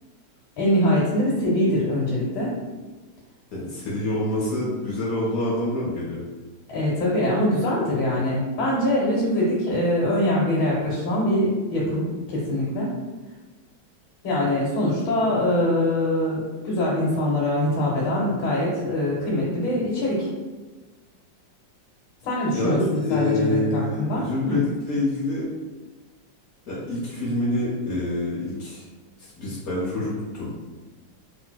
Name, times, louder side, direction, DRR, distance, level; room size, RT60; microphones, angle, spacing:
voice 1, 0.6-2.5 6.7-12.9 14.2-20.3 22.2-24.6, left 1 dB, 80° left, -5 dB, 1.6 m, -23 dB
voice 2, 3.5-6.2 22.5-25.5 26.7-28.8 29.4-30.5, left 1 dB, 60° left, -7 dB, 1.0 m, -26 dB
3.7 x 2.5 x 2.2 m, 1.3 s
omnidirectional pair, 2.1 m